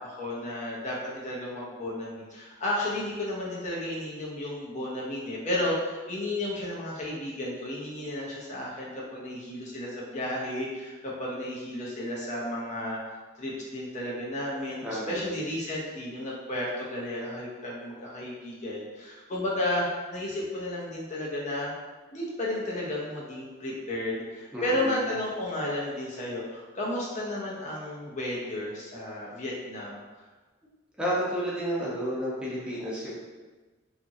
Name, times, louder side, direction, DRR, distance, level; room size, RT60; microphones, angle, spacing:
voice 1, 0.0-13.0 13.4-21.7 22.1-30.0, left 1 dB, 40° left, -5 dB, 0.5 m, -33 dB
voice 2, 14.8-15.3 24.5-25.0 31.0-33.1, equal, 5° right, -8 dB, 0.6 m, -31 dB
2.9 x 2.5 x 2.6 m, 1.3 s
head